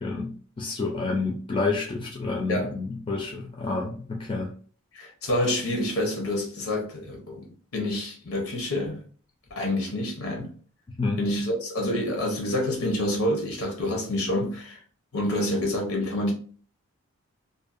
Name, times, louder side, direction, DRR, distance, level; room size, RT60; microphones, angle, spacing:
voice 1, 0.0-4.5 11.0-11.2, left 3 dB, 25° left, 0.3 m, -29 dB
voice 2, 4.9-9.0 9.5-10.5 11.2-14.8 15.1-16.3, left 1 dB, 85° left, 0.7 m, -28 dB
2.6 x 2.1 x 2.4 m
head